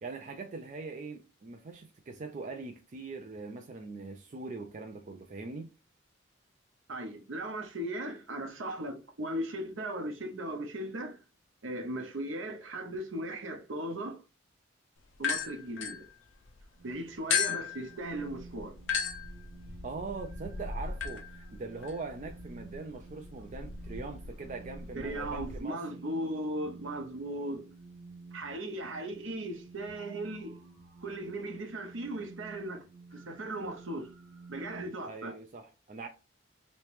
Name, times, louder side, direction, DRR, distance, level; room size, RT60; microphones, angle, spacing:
voice 1, 0.0-5.7 19.8-25.8 35.0-36.1, right 3 dB, 40° right, 0.4 m, -42 dB
voice 2, 6.9-11.2 11.6-14.2 15.2-16.0 16.8-18.7 24.9-27.7 28.3-30.6 31.0-32.8 33.1-34.1 34.5-35.4, right 1 dB, 70° right, 0.8 m, -37 dB
sound 1, 15.1-16.6 17.3-25.6, left 6 dB, 70° left, 0.5 m, -37 dB
sound 2, 16.8-34.9, right 3 dB, 55° right, 1.1 m, -52 dB
3.1 x 2.8 x 3.2 m
head